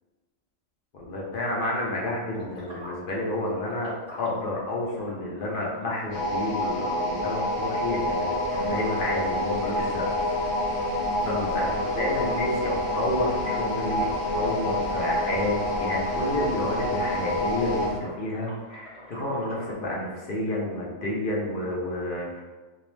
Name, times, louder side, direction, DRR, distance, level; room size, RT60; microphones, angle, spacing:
voice 1, 0.9-3.9 4.2-10.3 11.2-22.4, left 1 dB, 55° left, -3 dB, 0.6 m, -30 dB
sound 1, 2.3-19.7, equal, 5° right, 0.7 m, -46 dB
sound 2, 6.1-18.0, left 1 dB, 90° left, 1.0 m, -28 dB
sound 3, 6.1-18.0, right 1 dB, 60° right, 0.9 m, -40 dB
2.7 x 2.0 x 3.1 m, 1.3 s
omnidirectional pair, 1.4 m